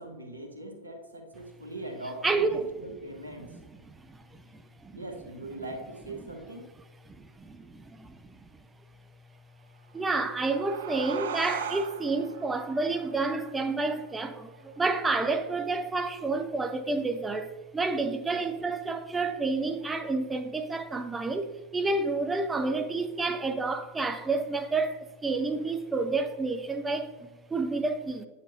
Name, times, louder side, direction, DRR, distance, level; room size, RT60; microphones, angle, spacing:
voice 1, 0.0-3.5 4.9-6.7 18.3-18.4, right 1 dB, 85° right, 1.2 m, -41 dB
voice 2, 2.2-3.0 3.4-5.0 6.2-6.5 7.1-8.5 9.9-28.3, right 3 dB, 15° right, 0.5 m, -30 dB
sound 1, 9.9-15.1, right 7 dB, 65° right, 0.5 m, -40 dB
8.7 x 7.2 x 2.7 m
figure-of-eight pair, 90°, 0 cm